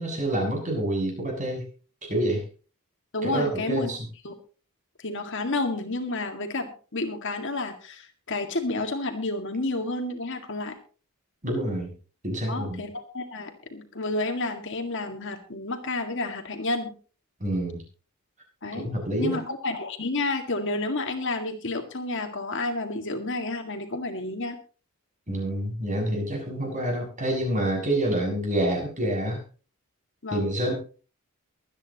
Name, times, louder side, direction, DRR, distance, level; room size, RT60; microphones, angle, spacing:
voice 1, 0.0-1.7 2.0-2.4 3.2-4.0 11.4-11.9 12.2-12.8 17.4-17.8 18.7-19.4 25.3-29.4 30.3-30.7, right 1 dB, 35° right, 0 dB, 6.9 m, -27 dB
voice 2, 3.1-3.9 4.2-4.3 5.0-10.8 12.5-16.9 18.6-18.9 19.2-24.6 30.2-30.5, left 2 dB, 55° left, 5 dB, 2.0 m, -30 dB
23.5 x 9.5 x 3.0 m, 0.37 s
head